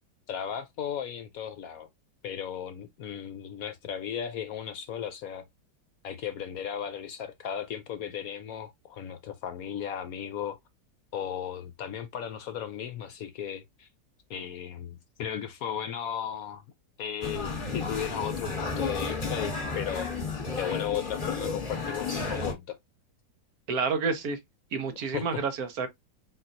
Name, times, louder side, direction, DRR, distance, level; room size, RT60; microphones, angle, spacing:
voice 1, 0.3-1.9 2.2-5.4 6.0-10.6 11.1-13.9 14.3-16.6 17.0-20.1 20.6-22.8 25.1-25.4, left 9 dB, 65° left, 0.9 m, -35 dB
sound 1, 17.2-22.5, left 4 dB, 30° left, 1.4 m, -32 dB
voice 2, 23.7-24.4 24.7-25.9, right 5 dB, 65° right, 1.2 m, -29 dB
4.3 x 4.0 x 2.4 m
omnidirectional pair, 1.8 m